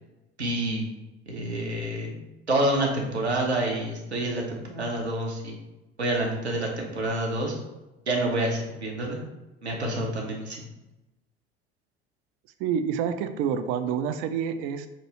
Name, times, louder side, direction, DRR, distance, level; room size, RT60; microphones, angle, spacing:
voice 1, 0.4-0.8 1.3-2.2 2.5-5.6 6.0-7.6 8.1-9.2 9.6-10.7, right 1 dB, 85° right, -1 dB, 0.8 m, -28 dB
voice 2, 12.6-14.9, right 7 dB, 45° right, 10 dB, 0.4 m, -28 dB
5.5 x 2.6 x 2.9 m, 1.0 s
figure-of-eight pair, 65°, 32 cm